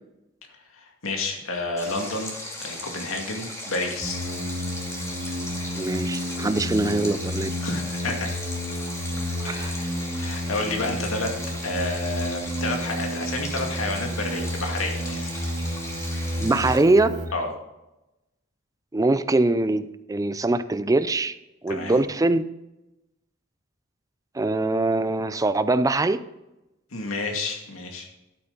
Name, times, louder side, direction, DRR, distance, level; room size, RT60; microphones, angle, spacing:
voice 1, 0.7-2.3 2.6-4.2 7.6-8.4 9.4-11.3 11.6-15.5 17.3-17.5 21.7-22.0 26.9-28.1, left 2 dB, 85° left, 2 dB, 2.2 m, -30 dB
Stream, 1.8-16.8, left 1 dB, 15° left, 2.6 m, -37 dB
sound 1, 4.0-17.3, equal, 40° right, 2.9 m, -31 dB
voice 2, 5.7-7.5 9.4-9.7 16.4-17.2 18.9-21.4 21.6-22.5 24.3-26.2, right 2 dB, 15° right, 13 dB, 0.4 m, -22 dB
12.0 x 8.9 x 4.0 m, 0.95 s
head